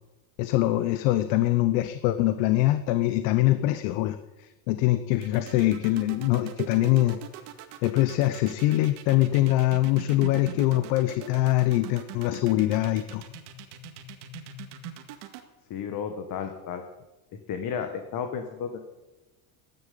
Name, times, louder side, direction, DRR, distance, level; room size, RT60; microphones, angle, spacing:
voice 1, 0.4-7.2 7.8-13.3, left 16 dB, 70° left, 11 dB, 1.0 m, -23 dB
sound 1, 5.1-15.4, right 10 dB, 70° right, 2.1 m, -41 dB
voice 2, 15.7-16.8 17.5-18.8, left 7 dB, 45° left, 6 dB, 1.6 m, -33 dB
13.5 x 10.5 x 8.5 m, 1.1 s
cardioid pair, 140°, 47 cm